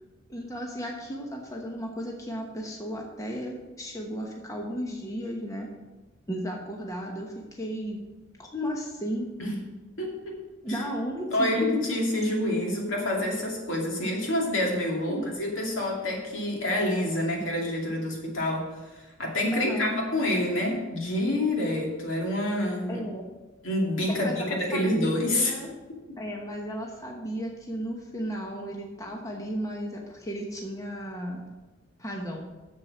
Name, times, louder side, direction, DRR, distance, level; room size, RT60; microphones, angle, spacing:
voice 1, 0.3-5.7 6.3-8.0 8.4-9.3 10.6-11.8 15.1-15.3 19.5-19.9 22.9-23.3 24.1-25.7 26.2-31.5 32.0-32.5, equal, 15° left, 0 dB, 1.0 m, -34 dB
voice 2, 10.0-10.4 10.7-10.8 11.3-18.7 19.2-23.1 23.6-25.5, left 1 dB, 75° left, -2 dB, 2.5 m, -27 dB
7.6 x 7.2 x 6.1 m, 1.1 s
head